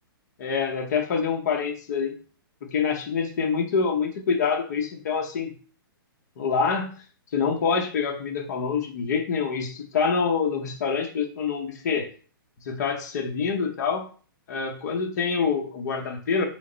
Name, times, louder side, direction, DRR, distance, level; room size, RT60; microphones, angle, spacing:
voice 1, 0.4-2.1 2.7-5.5 6.4-7.0 7.3-12.1 12.7-14.1 14.5-16.4, left 5 dB, 50° left, 3 dB, 0.8 m, -26 dB
4.0 x 3.3 x 3.8 m, 0.41 s
hypercardioid pair, 165°, 12 cm